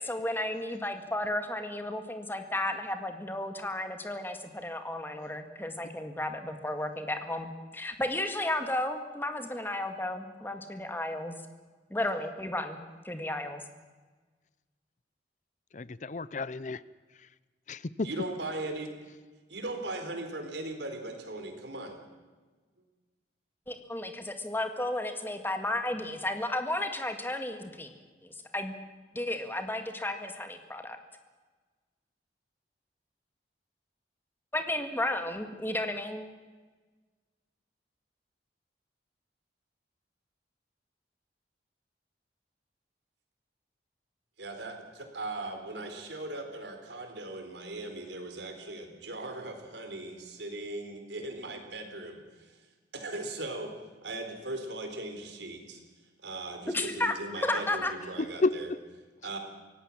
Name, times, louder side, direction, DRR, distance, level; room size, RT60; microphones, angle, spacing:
voice 1, 0.0-11.3 11.9-13.6 23.7-27.9 28.2-28.7 29.1-31.0 34.5-36.3 56.7-57.2 57.4-57.9, left 1 dB, 10° left, 7 dB, 1.9 m, -33 dB
voice 2, 15.7-16.8 17.1-17.3 17.7-18.1 58.2-58.8, left 3 dB, 45° left, 19 dB, 0.6 m, -31 dB
voice 3, 18.0-18.9 19.5-22.0 44.4-52.6 52.9-53.7 54.0-55.8 56.2-58.7 59.2-59.4, right 2 dB, 85° right, 5 dB, 4.1 m, -39 dB
24.0 x 17.5 x 7.4 m, 1.4 s
head